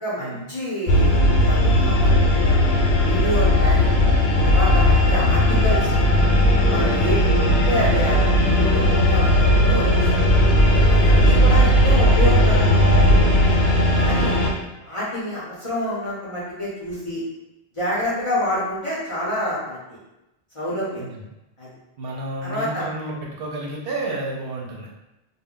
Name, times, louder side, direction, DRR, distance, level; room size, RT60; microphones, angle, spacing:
voice 1, 0.0-2.6 3.0-3.9 4.4-5.9 6.7-10.0 10.9-12.9 14.0-14.4 14.8-17.2 17.7-20.0 20.5-21.0 21.6-21.7 22.4-22.8, equal, 35° left, -8 dB, 0.6 m, -28 dB
sound 1, 0.9-14.5, left 1 dB, 70° left, 0.9 m, -17 dB
voice 2, 13.9-14.3 21.0-21.2 22.0-24.9, right 2 dB, 65° right, -2 dB, 0.7 m, -31 dB
2.1 x 2.1 x 3.6 m, 0.94 s
omnidirectional pair, 1.1 m